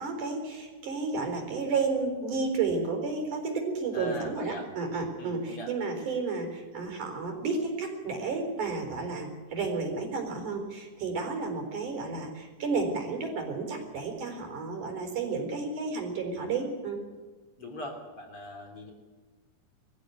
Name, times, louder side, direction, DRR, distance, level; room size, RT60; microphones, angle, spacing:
voice 1, 0.0-17.0, right 4 dB, 60° right, 4 dB, 5.6 m, -32 dB
voice 2, 3.9-4.6 5.2-5.7 17.6-18.9, equal, 40° left, 2 dB, 3.8 m, -40 dB
23.0 x 15.0 x 9.4 m, 1.3 s
omnidirectional pair, 4.1 m